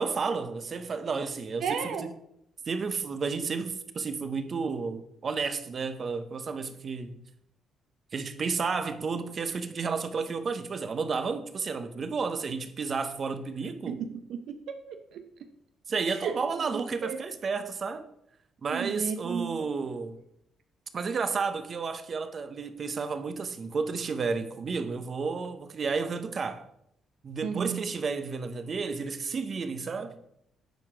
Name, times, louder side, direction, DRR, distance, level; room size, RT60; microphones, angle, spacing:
voice 1, 0.0-2.0 2.7-7.2 8.1-14.0 15.9-18.0 18.6-20.2 20.9-26.7 27.2-30.2, right 5 dB, 45° right, 0.8 m, -32 dB
voice 2, 1.6-2.1 13.9-15.2 16.1-16.4 16.7-17.2 18.7-19.6 27.4-27.8, right 6 dB, 75° right, 0.7 m, -34 dB
9.3 x 4.7 x 4.9 m
cardioid pair, 90°, 0 cm